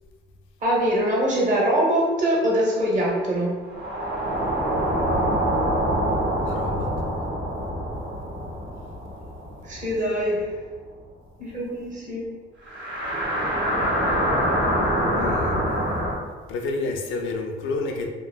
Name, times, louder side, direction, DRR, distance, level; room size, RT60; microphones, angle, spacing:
voice 1, 0.6-3.6 9.6-10.6 11.4-12.3, right 1 dB, 40° right, -4 dB, 1.0 m, -23 dB
sound 1, 3.6-10.3 10.5-10.6 12.7-16.1, equal, 65° right, 1.4 m, -25 dB
voice 2, 6.4-6.9 15.2-15.8 16.5-18.1, left 3 dB, 80° left, 3 dB, 0.5 m, -29 dB
2.9 x 2.6 x 2.2 m, 1.4 s
cardioid pair, 90°, 20 cm